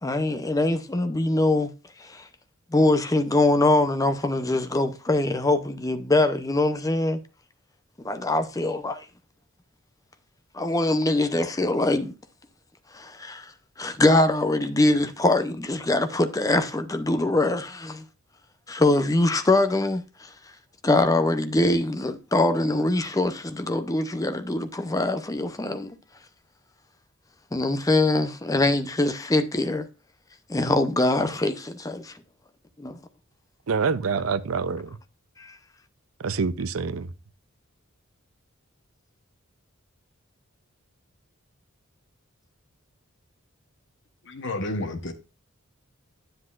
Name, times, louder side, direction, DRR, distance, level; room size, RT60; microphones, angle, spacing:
voice 1, 0.0-1.7 2.0-2.3 2.7-7.2 8.0-9.1 10.5-12.1 12.9-13.5 13.8-18.0 18.7-20.3 20.8-25.9 27.5-29.9 30.5-32.1 32.8-33.0 35.4-35.6, left 2 dB, 15° left, 0.6 m, -23 dB
voice 2, 33.7-35.0 36.2-37.1, right 5 dB, 75° right, 0.6 m, -26 dB
voice 3, 44.3-45.1, left 1 dB, 60° left, 1.1 m, -30 dB
9.7 x 7.8 x 2.5 m
head